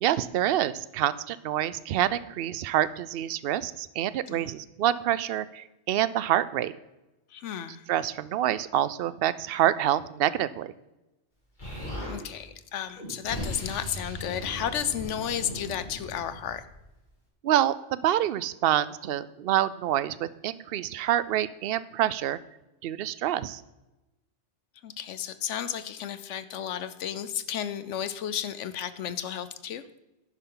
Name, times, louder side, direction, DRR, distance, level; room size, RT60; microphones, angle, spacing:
voice 1, 0.0-6.7 7.9-10.7 17.4-22.4 22.8-23.6, right 12 dB, 60° right, 16 dB, 0.7 m, -27 dB
voice 2, 7.3-7.8 12.0-16.6 24.8-29.8, left 9 dB, 80° left, 13 dB, 1.0 m, -33 dB
Explosion, 11.6-12.2 12.9-16.8, left 1 dB, 40° left, 3.3 m, -38 dB
11.0 x 10.0 x 3.9 m, 0.99 s
omnidirectional pair, 1.2 m